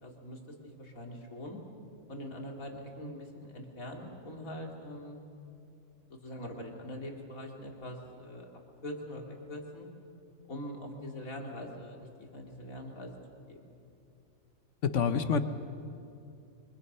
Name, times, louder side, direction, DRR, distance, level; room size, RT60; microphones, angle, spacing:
voice 1, 0.0-1.6 2.1-5.2 6.1-8.5 8.8-9.9 10.5-12.0 12.3-13.1 13.5-13.7, left 1 dB, 80° left, 1 dB, 3.2 m, -43 dB
voice 2, 14.8-15.4, left 6 dB, 60° left, 10 dB, 1.3 m, -27 dB
28.5 x 24.5 x 5.6 m, 2.7 s
omnidirectional pair, 1.4 m